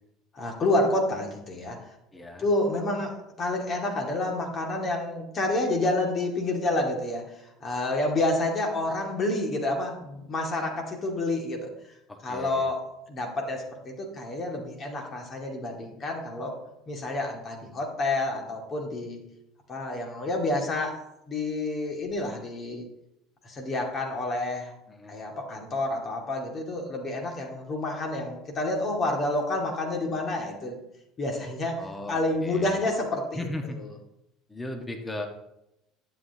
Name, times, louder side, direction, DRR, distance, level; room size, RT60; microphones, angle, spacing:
voice 1, 0.3-1.9 2.4-11.9 12.2-12.8 13.1-16.6 16.9-19.2 19.7-21.0 21.3-22.8 23.4-24.7 25.1-30.8 31.2-33.3, left 2 dB, 35° left, 1 dB, 2.2 m, -29 dB
voice 2, 2.1-2.4 12.1-12.7 24.9-25.1 31.8-32.9 33.3-33.8 34.5-35.3, left 1 dB, 15° left, 3 dB, 1.6 m, -37 dB
11.0 x 8.0 x 2.9 m, 0.85 s
figure-of-eight pair, 65°, 0 cm